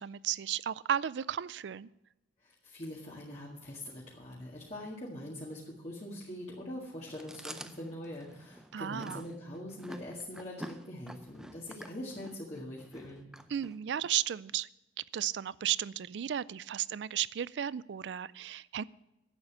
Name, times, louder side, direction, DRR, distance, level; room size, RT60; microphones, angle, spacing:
voice 1, 0.0-1.9 8.7-9.2 13.5-14.7 15.1-18.8, right 10 dB, 75° right, 20 dB, 0.4 m, -34 dB
voice 2, 2.4-13.2, left 1 dB, 35° left, -5 dB, 1.8 m, -43 dB
Chewing mastication, 7.1-14.1, equal, 5° right, 0.5 m, -48 dB
11.0 x 8.1 x 8.0 m, 0.91 s
head